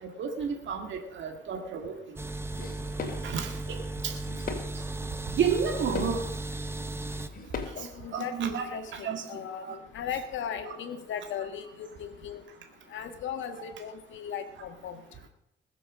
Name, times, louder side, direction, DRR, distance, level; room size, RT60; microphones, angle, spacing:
voice 1, 0.2-1.9 3.2-3.5 4.0-4.1 5.4-6.2 8.1-8.7 9.0-9.2 9.6-9.8, right 6 dB, 70° right, 4 dB, 2.0 m, -30 dB
sound 1, 2.2-7.3, right 2 dB, 10° right, 1.0 m, -36 dB
sound 2, 2.6-3.5 3.8-4.7 5.0-5.1 5.6-6.2 6.8-6.9 7.1-7.8, left 4 dB, 45° left, 2.8 m, -38 dB
voice 2, 7.7-12.4 12.9-15.0, left 8 dB, 75° left, 7 dB, 1.6 m, -37 dB
20.5 x 7.3 x 6.2 m, 0.80 s
cardioid pair, 90°, 20 cm